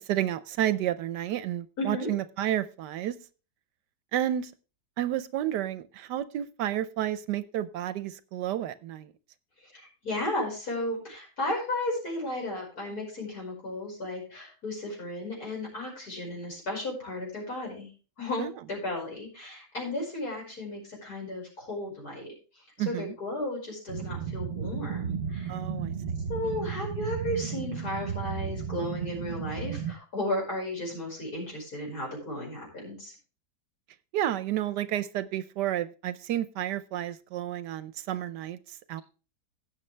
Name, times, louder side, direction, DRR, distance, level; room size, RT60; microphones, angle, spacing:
voice 1, 0.0-3.2 4.1-4.5 5.0-9.1 18.4-18.5 22.8-23.2 25.5-25.9 34.1-39.0, right 12 dB, 75° right, 14 dB, 1.2 m, -31 dB
voice 2, 1.8-2.1 9.7-17.9 18.2-22.3 22.9-25.6 26.3-33.1, left 1 dB, 60° left, -1 dB, 5.8 m, -34 dB
sound 1, 23.9-29.9, right 7 dB, 45° right, 1.1 m, -34 dB
16.5 x 6.6 x 3.3 m, 0.35 s
omnidirectional pair, 1.9 m